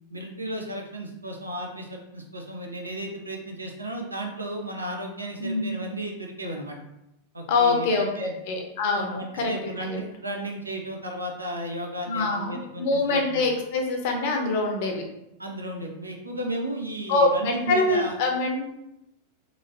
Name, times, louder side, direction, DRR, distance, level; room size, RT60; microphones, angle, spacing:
voice 1, 0.1-6.8 7.3-8.3 8.9-13.4 15.4-18.1, right 1 dB, 80° right, 2 dB, 0.5 m, -34 dB
voice 2, 5.4-5.7 7.5-9.5 9.8-10.0 12.1-15.0 17.1-18.7, left 3 dB, 50° left, 3 dB, 0.6 m, -24 dB
3.1 x 2.5 x 2.5 m, 0.85 s
figure-of-eight pair, 90°, 0 cm